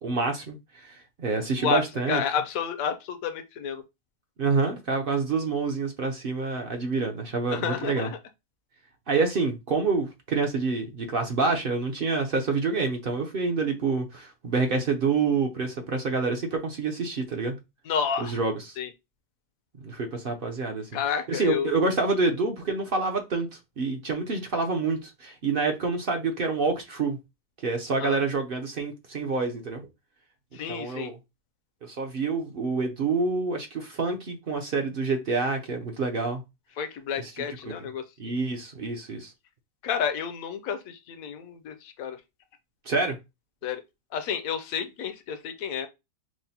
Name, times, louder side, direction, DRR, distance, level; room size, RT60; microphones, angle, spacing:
voice 1, 0.0-2.2 4.4-8.1 9.1-17.6 18.2-18.8 19.8-20.9 21.3-23.5 23.8-27.2 27.6-29.9 30.7-31.2 31.8-36.4 37.2-37.3 37.6-37.7 38.2-39.3 42.9-43.2, right 4 dB, 60° right, 0.6 m, -27 dB
voice 2, 1.6-3.8 7.5-8.2 17.9-18.4 18.8-18.9 20.9-21.8 28.0-28.2 30.5-31.1 36.8-38.0 39.8-42.2 43.6-43.8 44.1-45.9, left 7 dB, 70° left, 0.9 m, -30 dB
5.9 x 2.1 x 2.8 m
omnidirectional pair, 1.7 m